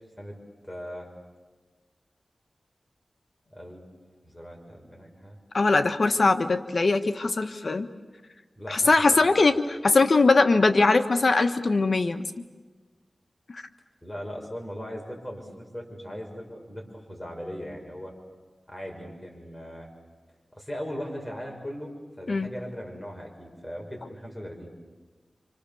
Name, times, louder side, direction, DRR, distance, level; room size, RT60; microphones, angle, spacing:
voice 1, 0.6-1.1 3.5-3.8 4.2-5.4 8.6-9.3 14.0-18.1 18.7-19.9 20.5-24.7, equal, 15° left, 0 dB, 6.1 m, -39 dB
voice 2, 5.5-7.9 8.7-12.3 13.5-13.6 22.3-22.5, left 3 dB, 60° left, 8 dB, 1.2 m, -21 dB
29.5 x 26.5 x 7.1 m, 1.3 s
wide cardioid pair, 80°, 0 cm